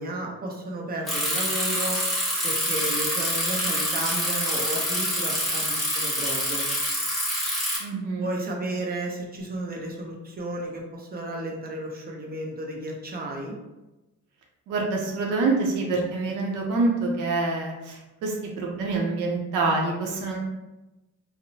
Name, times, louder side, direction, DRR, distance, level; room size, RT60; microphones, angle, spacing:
voice 1, 0.0-2.0 2.4-6.7 8.2-13.6, right 1 dB, 30° right, 0 dB, 0.6 m, -33 dB
Bicycle, 1.1-7.8, equal, ahead, 0.9 m, -26 dB
voice 2, 7.8-8.3 14.7-20.4, right 3 dB, 85° right, -1 dB, 0.6 m, -26 dB
2.6 x 2.0 x 2.6 m, 1.0 s
cardioid pair, 90°, 30 cm